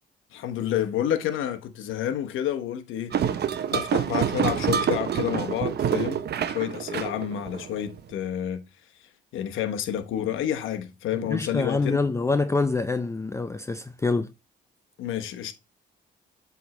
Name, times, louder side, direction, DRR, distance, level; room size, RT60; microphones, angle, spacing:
voice 1, 0.3-3.4 3.7-8.6 9.3-12.0 15.0-15.5, left 10 dB, 85° left, 1.0 m, -29 dB
sound 1, 3.1-8.0, right 8 dB, 55° right, 0.8 m, -27 dB
voice 2, 11.2-14.3, left 3 dB, 15° left, 0.4 m, -26 dB
7.7 x 3.6 x 4.2 m
cardioid pair, 90°, 20 cm